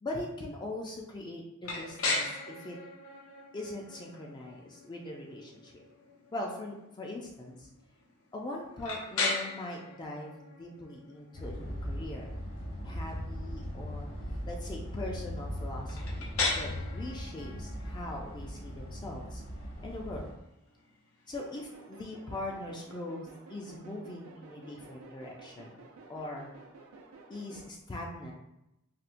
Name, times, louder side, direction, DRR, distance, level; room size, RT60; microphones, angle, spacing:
voice 1, 0.0-2.8 3.5-5.8 6.3-7.7 8.3-12.3 12.8-14.1 14.5-16.3 16.6-19.4 19.8-20.3 21.3-25.8 26.1-26.5 27.3-28.3, left 1 dB, 20° left, -1 dB, 0.3 m, -41 dB
sound 1, 1.6-21.4, left 3 dB, 80° left, 0.6 m, -39 dB
sound 2, 11.3-20.3, equal, 60° left, 1.3 m, -39 dB
sound 3, 21.3-27.7, right 3 dB, 90° right, 0.5 m, -53 dB
4.2 x 2.1 x 2.5 m, 0.90 s
head